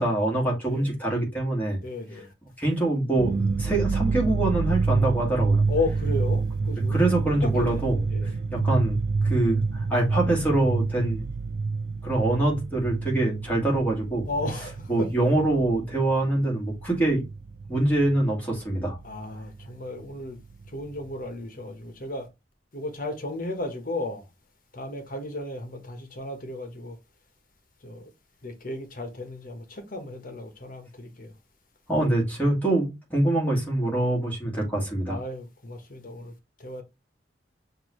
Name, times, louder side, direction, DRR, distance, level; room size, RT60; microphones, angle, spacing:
voice 1, 0.0-1.8 2.6-5.6 6.9-8.0 8.5-11.3 12.0-14.3 14.9-17.3 17.7-19.0 31.9-35.2, right 2 dB, 10° left, 2.1 m, -24 dB
voice 2, 1.8-2.3 5.7-7.0 7.4-7.8 8.1-8.3 14.3-15.1 19.0-20.4 20.7-22.3 22.7-24.3 24.7-27.0 27.8-28.1 28.4-31.3 35.1-36.3 36.6-36.8, left 2 dB, 50° left, 1.1 m, -34 dB
sound 1, 3.2-18.3 18.5-19.7 20.0-20.1 20.4-21.1, right 4 dB, 55° right, 0.4 m, -28 dB
6.0 x 2.7 x 3.1 m
head